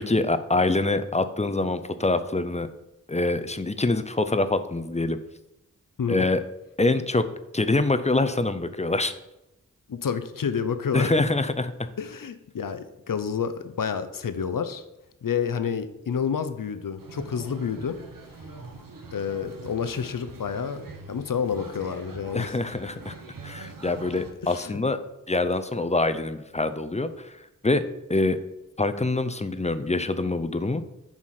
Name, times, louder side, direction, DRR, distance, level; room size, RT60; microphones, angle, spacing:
voice 1, 0.0-2.7 3.1-5.2 6.1-6.4 6.8-7.2 7.5-9.1 10.9-11.7 22.3-23.1 23.4-25.0 25.3-27.3 27.6-27.8 28.1-28.4 28.8-30.8, left 2 dB, 20° left, 10 dB, 0.5 m, -25 dB
voice 2, 9.9-11.1 12.0-14.8 15.2-18.0 19.1-20.8 21.1-22.5 24.4-24.8, left 7 dB, 80° left, 11 dB, 0.6 m, -29 dB
sound 1, 17.0-24.3, right 3 dB, 85° right, 0.8 m, -43 dB
7.3 x 4.8 x 4.2 m, 0.90 s
wide cardioid pair, 45°, 33 cm